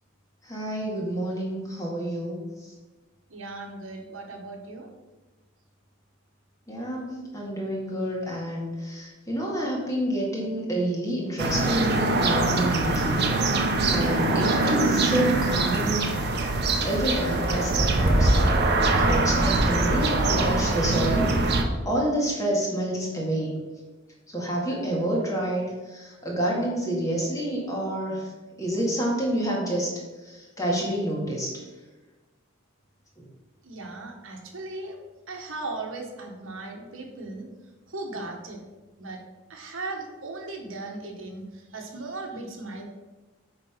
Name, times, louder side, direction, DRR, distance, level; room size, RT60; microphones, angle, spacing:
voice 1, 0.4-2.4 6.7-7.1 7.3-13.3 13.9-16.1 16.8-18.5 19.0-21.4 21.9-23.6 24.3-28.3 28.6-29.9 30.2-31.6, right 1 dB, 15° left, -3 dB, 1.9 m, -28 dB
voice 2, 3.3-4.9 33.6-35.0 35.3-37.5 37.9-38.7 39.0-39.2 39.5-42.8, right 2 dB, 70° right, 1 dB, 1.5 m, -37 dB
sound 1, 11.4-21.6, right 2 dB, 50° right, 0.9 m, -23 dB
8.7 x 3.9 x 5.8 m, 1.2 s
head